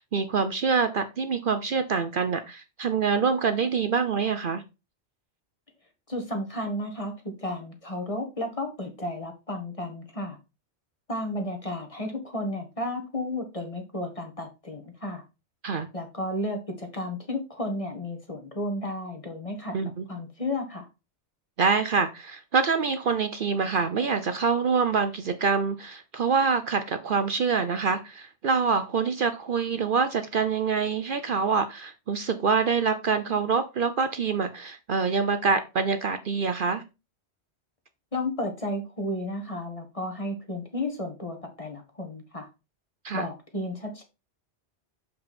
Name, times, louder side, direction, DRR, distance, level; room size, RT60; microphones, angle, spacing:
voice 1, 0.0-4.6 15.6-15.9 19.7-20.0 21.6-36.8 43.0-43.3, right 5 dB, 55° right, 0.8 m, -25 dB
voice 2, 6.1-10.4 11.1-15.2 15.9-19.7 20.1-20.9 38.1-42.5 43.1-44.0, left 1 dB, 30° left, 1.7 m, -33 dB
6.8 x 5.5 x 4.3 m
omnidirectional pair, 1.2 m